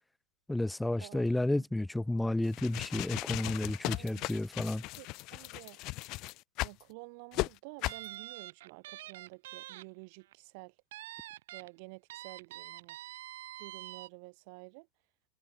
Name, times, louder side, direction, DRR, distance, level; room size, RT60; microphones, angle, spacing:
voice 1, 0.5-4.8, left 1 dB, 5° left, 0.9 m, -31 dB
sound 1, 2.4-6.8 7.3-7.5 7.8-8.1, left 21 dB, 40° left, 1.0 m, -37 dB
voice 2, 3.9-4.3 5.0-5.8 6.6-10.7 11.5-13.0 13.6-14.9, right 32 dB, 50° right, 3.6 m, -50 dB
sound 2, 7.9-9.8 10.2-10.3 10.9-11.7 12.1-14.1, right 15 dB, 65° right, 3.2 m, -46 dB
hypercardioid pair, 135°, 0 cm